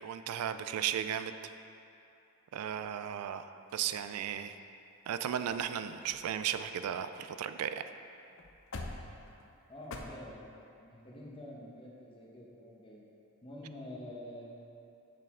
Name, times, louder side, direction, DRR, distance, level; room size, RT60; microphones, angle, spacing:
voice 1, 0.0-1.5 2.5-3.5 3.7-4.6 5.1-7.8, right 9 dB, 80° right, 11 dB, 0.3 m, -35 dB
sound 1, 3.7-4.5 5.1-5.2 5.4-5.7 6.0-7.6 7.9-8.0 8.3-10.0, left 2 dB, 55° left, 0.5 m, -47 dB
voice 2, 9.7-10.4 10.8-13.0 13.4-14.5, left 1 dB, 25° left, -4 dB, 1.0 m, -47 dB
6.5 x 6.2 x 3.7 m, 2.7 s
head